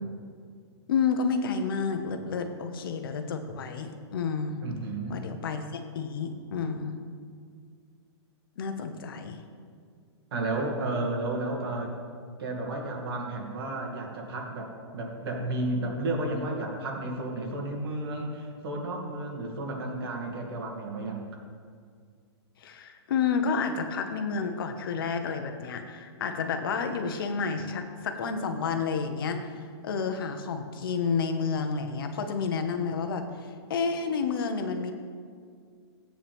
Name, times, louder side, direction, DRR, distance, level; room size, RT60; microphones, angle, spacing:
voice 1, 0.9-4.6 5.1-7.0 8.6-9.4 22.6-29.4 29.8-33.3 33.7-34.9, left 5 dB, 50° left, 6 dB, 1.0 m, -30 dB
voice 2, 4.6-5.2 10.3-11.9 12.4-21.2, right 2 dB, 55° right, 0 dB, 2.3 m, -32 dB
14.0 x 8.8 x 3.6 m, 2.1 s
hypercardioid pair, 170°, 15 cm